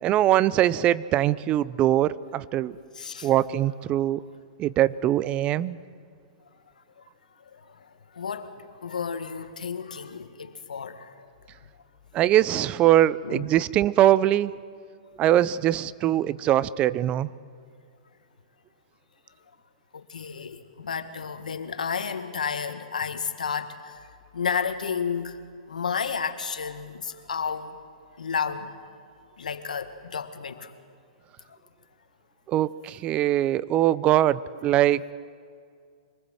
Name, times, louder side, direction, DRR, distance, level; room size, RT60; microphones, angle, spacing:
voice 1, 0.0-2.8 3.2-4.2 4.6-5.8 12.1-14.5 15.2-17.3 32.5-35.0, right 13 dB, 30° right, 19 dB, 0.5 m, -22 dB
voice 2, 2.9-3.3 7.0-7.1 7.4-11.1 13.2-13.5 19.9-24.1 24.3-25.4 25.7-27.8 28.2-28.7 29.4-30.7 31.5-31.6, left 6 dB, 90° left, 8 dB, 1.7 m, -32 dB
25.5 x 20.0 x 7.8 m, 2.3 s
hypercardioid pair, 130°, 4 cm